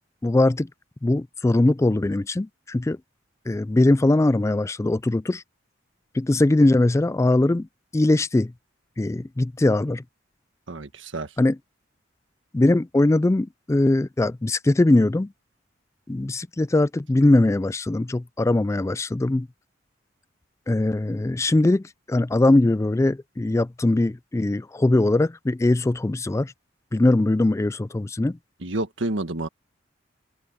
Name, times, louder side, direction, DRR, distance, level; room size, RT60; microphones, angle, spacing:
voice 1, 0.2-0.7 1.0-3.0 3.5-5.4 6.1-7.7 7.9-8.5 9.0-10.0 11.4-11.6 12.5-15.3 16.1-19.5 20.7-26.5 26.9-28.4, left 2 dB, 15° left, 0.3 m, -21 dB
voice 2, 10.7-11.3 28.6-29.5, right 2 dB, 85° right, 1.6 m, -29 dB
open air
head